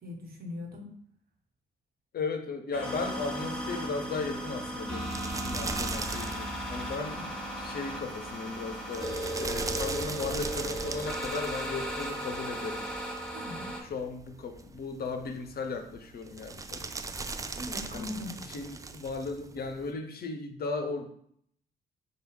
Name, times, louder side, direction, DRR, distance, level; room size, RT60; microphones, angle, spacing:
voice 1, 0.0-0.9 7.1-7.2 13.3-13.8 17.6-18.3, left 2 dB, 45° right, 1 dB, 1.2 m, -40 dB
voice 2, 2.1-7.2 7.6-12.9 13.8-17.0 17.9-18.1 18.5-21.1, left 4 dB, 50° left, 6 dB, 0.6 m, -36 dB
sound 1, 2.7-13.8, equal, 5° left, 1.4 m, -36 dB
sound 2, 3.0-19.9, right 3 dB, 15° right, 0.4 m, -41 dB
4.6 x 2.3 x 3.2 m, 0.66 s
hypercardioid pair, 40°, 21 cm